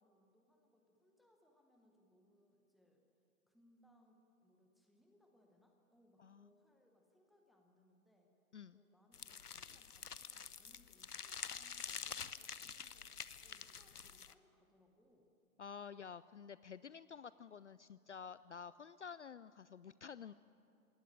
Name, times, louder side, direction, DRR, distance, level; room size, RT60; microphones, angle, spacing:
voice 1, 0.0-3.0 3.5-8.3 8.7-15.3, left 1 dB, ahead, 2 dB, 0.9 m, -72 dB
voice 2, 6.2-6.5 8.5-8.8 15.6-20.3, left 6 dB, 55° left, 17 dB, 0.5 m, -51 dB
Gore loop, 9.1-14.3, left 6 dB, 80° left, 0.9 m, -48 dB
20.0 x 17.5 x 8.9 m, 2.5 s
figure-of-eight pair, 130°, 45 cm